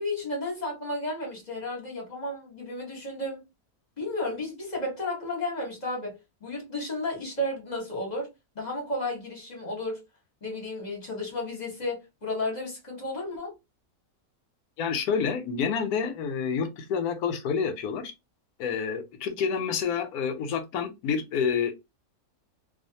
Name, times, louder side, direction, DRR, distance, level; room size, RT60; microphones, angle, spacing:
voice 1, 0.0-3.5 4.0-10.0 10.4-13.5, left 1 dB, 30° left, 1.0 m, -33 dB
voice 2, 14.8-18.1 18.6-21.8, left 6 dB, 90° left, 1.1 m, -28 dB
2.4 x 2.4 x 2.7 m
omnidirectional pair, 1.6 m